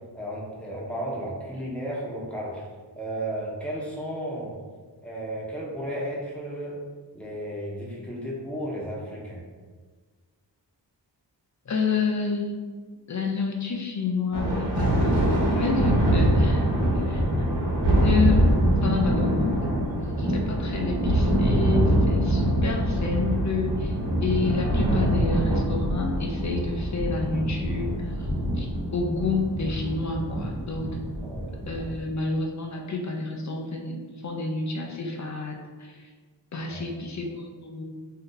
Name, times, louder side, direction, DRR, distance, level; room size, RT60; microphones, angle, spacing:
voice 1, 0.1-2.7 2.9-4.5 5.0-6.8 7.1-9.4 31.2-31.5 36.7-36.9, right 1 dB, 5° left, -5 dB, 0.8 m, -33 dB
voice 2, 11.7-12.6 13.1-15.2 15.5-16.6 16.9-17.5 18.0-18.4 18.8-24.0 24.2-28.2 28.5-31.0 31.7-36.1 36.5-37.8, left 4 dB, 40° left, 1 dB, 0.5 m, -29 dB
Thunder, 14.3-32.0, right 1 dB, 75° right, 1.1 m, -24 dB
2.7 x 2.3 x 3.7 m, 1.4 s
wide cardioid pair, 65°, 44 cm